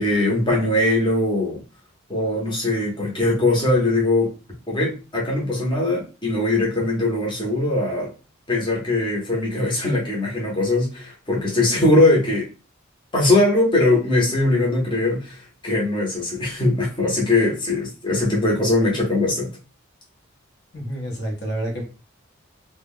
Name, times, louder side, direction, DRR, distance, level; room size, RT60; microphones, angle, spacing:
voice 1, 0.0-1.6 2.1-4.3 4.7-8.1 8.5-12.5 13.1-19.5, left 2 dB, 25° left, 0.8 m, -21 dB
voice 2, 20.7-21.8, right 1 dB, 55° left, 0.8 m, -28 dB
2.3 x 2.1 x 3.5 m
head